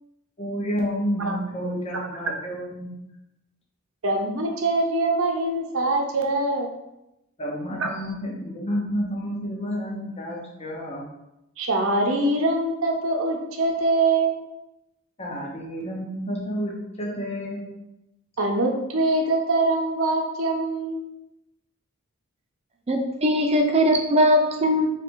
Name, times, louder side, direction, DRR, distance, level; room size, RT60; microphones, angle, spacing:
voice 1, 0.4-3.0 7.4-11.0 15.2-17.6, equal, 30° left, -2 dB, 0.7 m, -30 dB
voice 2, 1.2-2.1 4.0-6.7 7.8-7.9 11.6-14.4 18.4-21.0, right 2 dB, 80° right, 2 dB, 0.7 m, -24 dB
voice 3, 22.9-24.9, equal, 30° right, 3 dB, 0.5 m, -20 dB
3.2 x 2.9 x 4.5 m, 0.88 s
head